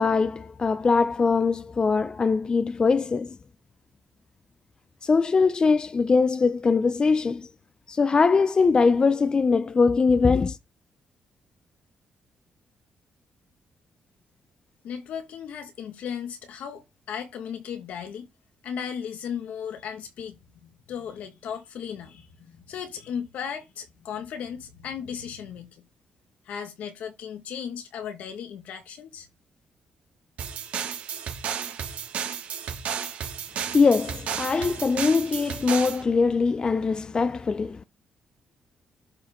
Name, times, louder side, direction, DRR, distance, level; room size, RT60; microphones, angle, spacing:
voice 1, 0.0-3.3 5.0-7.5 7.9-10.6 33.7-37.8, left 4 dB, 35° left, 0.6 m, -22 dB
voice 2, 14.8-18.3 18.6-25.9 26.5-29.3, left 8 dB, 85° left, 1.9 m, -36 dB
sound 1, 30.4-36.0, right 8 dB, 75° right, 2.7 m, -33 dB
12.0 x 4.8 x 3.9 m
cardioid pair, 90°, 2 cm